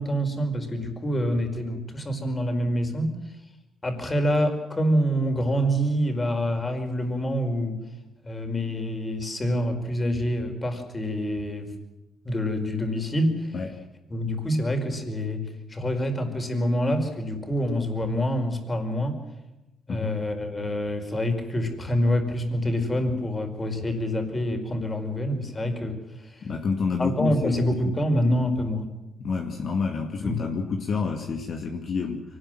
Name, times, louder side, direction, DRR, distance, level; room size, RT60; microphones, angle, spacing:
voice 1, 0.0-3.2 3.8-7.8 8.2-11.8 12.2-13.6 14.1-19.2 19.9-26.5 27.0-28.9 30.2-30.4, equal, 25° left, 5 dB, 5.0 m, -26 dB
voice 2, 26.4-27.7 29.2-32.2, left 5 dB, 55° left, 2 dB, 2.4 m, -28 dB
24.0 x 19.0 x 7.8 m, 0.96 s
cardioid pair, 90°, 0 cm